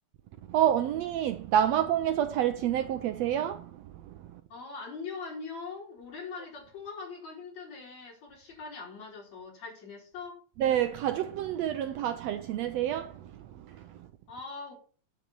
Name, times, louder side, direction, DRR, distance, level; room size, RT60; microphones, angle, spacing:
voice 1, 0.5-4.4 10.6-14.1, right 10 dB, 80° right, 1.6 m, -29 dB
voice 2, 4.5-10.4 14.3-14.7, left 4 dB, 60° left, 6.3 m, -42 dB
9.4 x 9.3 x 4.6 m
omnidirectional pair, 3.5 m